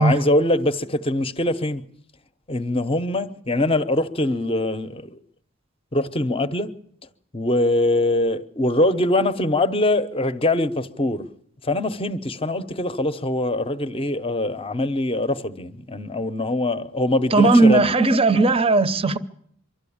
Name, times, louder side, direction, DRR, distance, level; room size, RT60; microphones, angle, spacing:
voice 1, 0.0-1.8 2.5-5.2 5.9-6.7 7.3-11.3 11.6-17.8, left 1 dB, 25° left, 0.8 m, -23 dB
voice 2, 17.3-19.2, right 3 dB, 25° right, 0.7 m, -16 dB
24.5 x 13.0 x 8.7 m
head